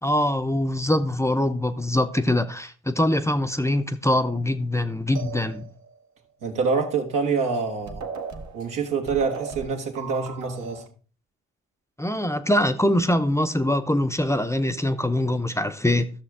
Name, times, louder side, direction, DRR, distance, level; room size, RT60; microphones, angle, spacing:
voice 1, 0.0-5.7 12.0-16.1, left 1 dB, 10° left, 0.8 m, -23 dB
sound 1, 5.1-6.0 7.5-7.6 7.9-10.9, right 5 dB, 60° right, 1.2 m, -37 dB
voice 2, 6.4-8.0 8.5-10.8, right 5 dB, 80° right, 1.9 m, -26 dB
13.0 x 6.5 x 3.6 m
hypercardioid pair, 45°, 32 cm